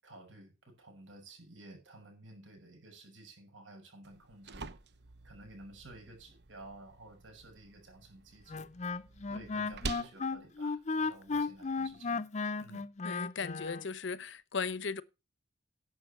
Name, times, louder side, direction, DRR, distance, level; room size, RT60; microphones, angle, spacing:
voice 1, 0.0-4.6 5.2-8.7 9.3-12.2 12.6-12.9, right 2 dB, 90° right, 7.5 m, -53 dB
sound 1, 4.0-12.0, right 3 dB, 60° right, 0.9 m, -48 dB
Wind instrument woodwind instrument, 8.5-13.9, left 4 dB, 40° left, 0.6 m, -35 dB
voice 2, 13.0-15.0, left 5 dB, 75° left, 0.8 m, -37 dB
11.0 x 7.2 x 7.0 m
head